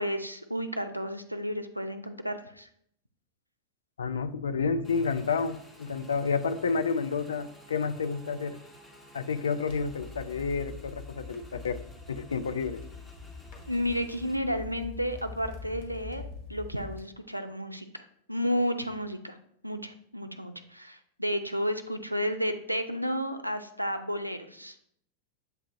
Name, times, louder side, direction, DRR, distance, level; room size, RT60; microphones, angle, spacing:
voice 1, 0.0-2.7 13.7-16.2 16.5-18.0 18.3-19.4 19.6-24.8, equal, 90° right, 8 dB, 0.4 m, -32 dB
voice 2, 4.0-8.6 9.1-11.8 12.1-12.8, left 5 dB, 70° left, 12 dB, 0.3 m, -30 dB
Motorcycle / Engine, 4.8-14.4, equal, 10° left, 0.8 m, -54 dB
sound 1, 9.7-17.1, left 4 dB, 45° left, 1.2 m, -44 dB
7.7 x 2.7 x 2.5 m, 0.68 s
figure-of-eight pair, 90°, 0 cm